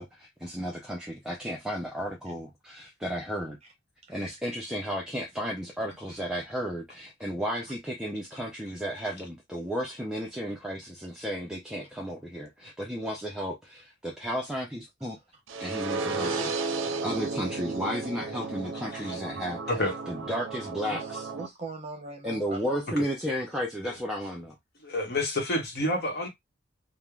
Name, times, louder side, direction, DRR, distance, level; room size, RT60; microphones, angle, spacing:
voice 1, 0.0-3.6 4.1-15.2 15.6-16.5 17.0-19.6 20.1-21.3 22.2-24.5, equal, 5° right, 0.4 m, -33 dB
sound 1, 15.5-21.5, right 4 dB, 80° right, 0.5 m, -33 dB
voice 2, 16.1-17.2 20.8-23.4, right 2 dB, 35° right, 0.9 m, -42 dB
voice 3, 24.8-26.3, left 1 dB, 55° left, 0.9 m, -29 dB
3.2 x 2.0 x 2.3 m
head